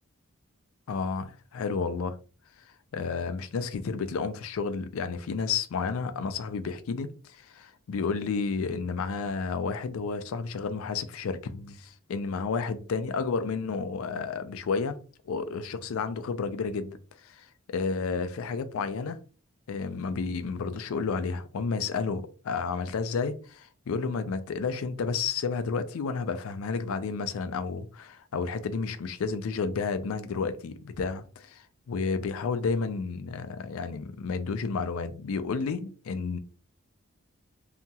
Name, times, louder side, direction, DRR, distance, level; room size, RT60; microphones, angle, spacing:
voice 1, 0.9-2.2 2.9-15.0 15.3-19.2 19.7-36.4, left 5 dB, 75° left, 0.4 m, -31 dB
2.8 x 2.3 x 2.7 m
head